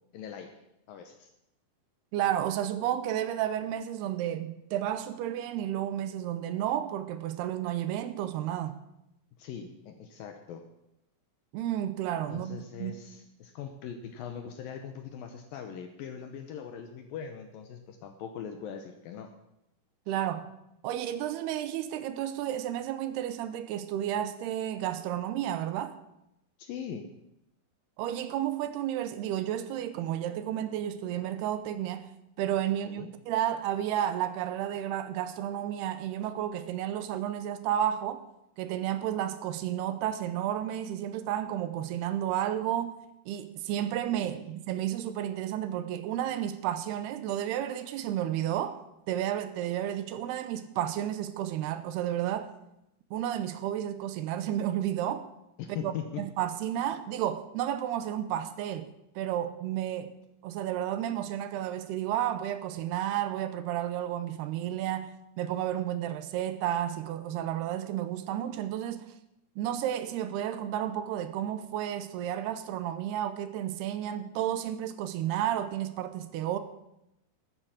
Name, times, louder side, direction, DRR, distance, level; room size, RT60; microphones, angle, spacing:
voice 1, 0.1-0.6 0.9-1.3 9.4-10.6 12.3-19.3 26.6-27.1 32.8-33.1 44.2-44.5 55.6-56.2, left 8 dB, 70° left, 2.4 m, -41 dB
voice 2, 2.1-8.8 11.5-13.0 20.1-20.5 20.8-25.9 28.0-32.1 32.4-38.2 38.6-43.0 43.3-52.5 53.1-55.3 55.8-58.9 59.2-60.1 60.4-69.1 69.6-76.6, right 11 dB, 85° right, 2.8 m, -32 dB
12.5 x 9.5 x 7.5 m
omnidirectional pair, 4.7 m